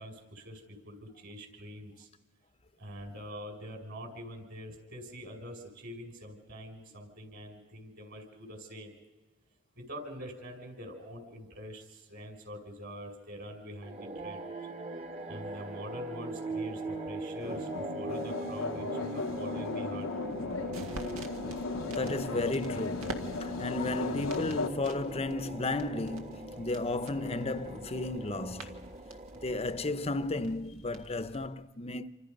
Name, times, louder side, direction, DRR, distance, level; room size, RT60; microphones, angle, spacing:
voice 1, 0.0-2.1 2.8-8.9 9.8-14.5 15.3-20.1, equal, 55° right, 5.8 m, -44 dB
sound 1, 13.8-30.4, right 2 dB, 30° right, 1.2 m, -41 dB
sound 2, 17.4-24.7, left 4 dB, 70° left, 0.7 m, -36 dB
sound 3, 20.2-31.5, right 2 dB, 90° right, 1.9 m, -49 dB
voice 2, 21.8-28.9 29.4-32.1, left 2 dB, 30° left, 0.7 m, -34 dB
28.0 x 26.0 x 5.3 m
head